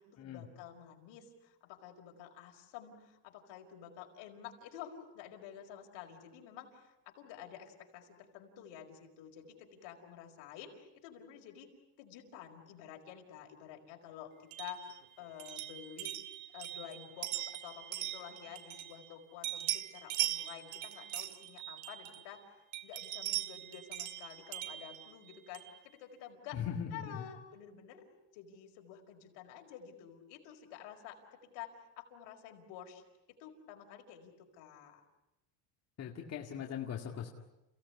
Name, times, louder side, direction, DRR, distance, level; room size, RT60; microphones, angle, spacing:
voice 1, 0.0-11.7 12.0-14.8 15.2-16.1 16.5-22.4 22.8-26.6 26.9-33.0 33.4-35.0, left 9 dB, 65° left, 2 dB, 5.1 m, -50 dB
sound 1, 14.5-19.1 19.4-22.4 22.7-25.8, right 15 dB, 80° right, 2.0 m, -40 dB
voice 2, 26.5-27.2 36.0-37.3, left 8 dB, 35° left, 1 dB, 2.2 m, -40 dB
29.5 x 17.5 x 9.8 m, 0.96 s
cardioid pair, 135°, 46 cm